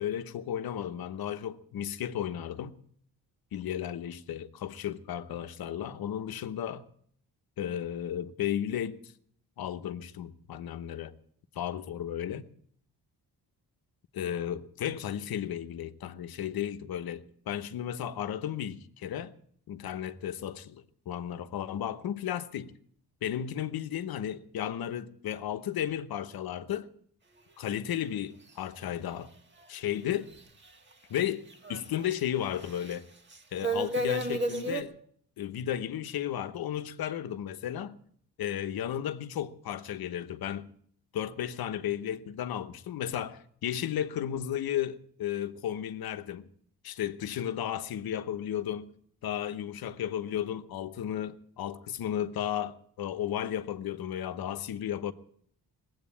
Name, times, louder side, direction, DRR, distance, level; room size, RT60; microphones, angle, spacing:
voice 1, 0.0-2.8 3.5-6.9 7.6-9.0 9.6-11.1 11.5-12.5 14.1-19.3 19.7-22.7 23.2-26.9 27.6-29.3 29.7-30.3 31.1-33.1 33.5-35.0 35.4-38.0 38.4-40.8 41.1-46.5 46.8-48.9 49.2-55.1, left 10 dB, 70° left, 1.0 m, -34 dB
sound 1, 30.3-30.4 31.2-31.3 31.5-32.1 32.6-33.0 33.3-34.8, right 1 dB, 30° right, 1.5 m, -31 dB
19.5 x 8.2 x 8.4 m
wide cardioid pair, 150°, 38 cm